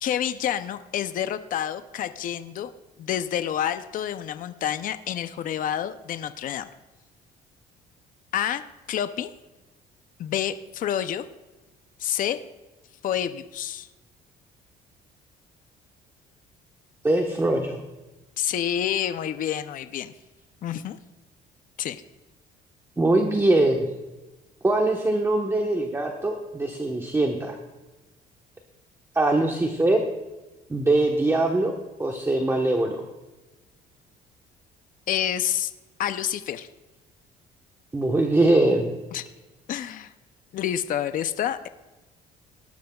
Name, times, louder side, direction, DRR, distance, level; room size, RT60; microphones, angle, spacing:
voice 1, 0.0-2.7 3.0-6.7 8.3-8.6 8.9-9.3 10.2-11.3 12.0-12.4 13.0-13.9 18.4-20.1 20.6-21.0 21.8-22.0 35.1-35.7 36.0-36.7 39.1-39.2 39.7-40.1 40.5-41.7, left 10 dB, 55° left, 10 dB, 0.6 m, -28 dB
voice 2, 17.0-17.8 23.0-23.9 24.6-27.6 29.1-30.0 30.7-31.7 32.0-33.0 37.9-38.9, right 2 dB, 15° right, 2 dB, 1.2 m, -22 dB
18.5 x 11.5 x 2.4 m, 1.1 s
cardioid pair, 110°, 17 cm